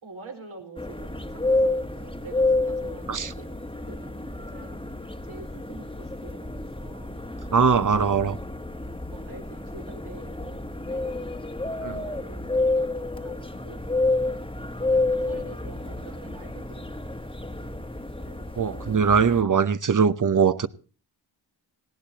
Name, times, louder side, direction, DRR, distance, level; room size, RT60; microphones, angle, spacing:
voice 1, 0.0-7.2 9.1-11.2 11.9-13.9 14.8-17.6 18.2-19.3, right 3 dB, 85° right, 4.7 m, -47 dB
sound 1, 0.8-19.4, left 2 dB, 10° left, 1.3 m, -29 dB
voice 2, 7.5-8.4 11.8-11.9 18.6-20.7, right 6 dB, 40° right, 0.9 m, -21 dB
19.0 x 17.0 x 2.9 m
cardioid pair, 55°, 48 cm